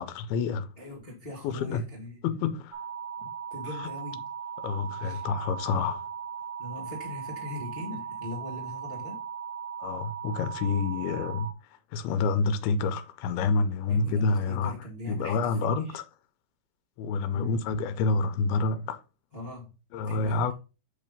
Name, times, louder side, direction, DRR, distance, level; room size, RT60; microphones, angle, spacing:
voice 1, 0.0-0.7 1.4-1.8 2.2-2.8 3.2-3.3 3.8-3.9 4.6-6.1 9.8-11.5 11.9-14.7 15.1-16.0 17.0-19.0 19.9-20.5, left 4 dB, 90° left, 2.5 m, -28 dB
voice 2, 0.8-2.2 3.5-4.2 5.0-5.3 6.6-9.2 13.9-16.0 17.3-17.6 19.3-19.7 20.0-20.5, left 1 dB, 35° left, 0.9 m, -40 dB
sound 1, 2.7-11.5, right 7 dB, 65° right, 1.9 m, -38 dB
8.3 x 3.3 x 5.2 m
omnidirectional pair, 4.3 m